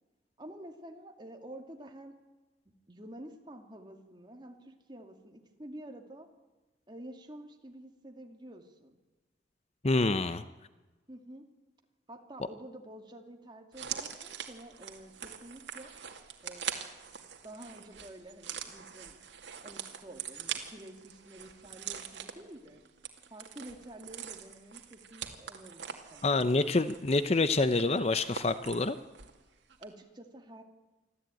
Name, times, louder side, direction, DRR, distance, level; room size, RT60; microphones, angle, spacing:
voice 1, 0.4-2.2 2.7-6.3 6.9-9.0 11.1-11.5 12.1-15.9 16.4-16.7 17.4-19.2 19.6-22.8 23.3-26.4 29.8-30.6, right 1 dB, 25° right, 4 dB, 2.3 m, -49 dB
voice 2, 9.8-10.4 26.2-29.0, left 2 dB, 35° left, 12 dB, 0.7 m, -27 dB
sound 1, 13.7-29.4 29.7-29.8, right 8 dB, 75° right, 2.3 m, -43 dB
25.0 x 14.5 x 9.1 m, 1.2 s
head